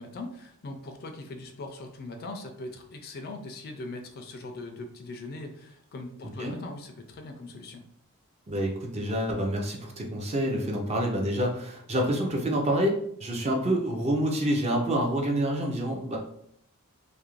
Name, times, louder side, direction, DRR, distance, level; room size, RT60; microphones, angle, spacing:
voice 1, 0.0-7.8, left 2 dB, 45° left, 5 dB, 0.3 m, -40 dB
voice 2, 6.2-6.6 8.5-16.2, right 1 dB, 30° right, 1 dB, 0.4 m, -27 dB
2.4 x 2.0 x 3.0 m, 0.69 s
head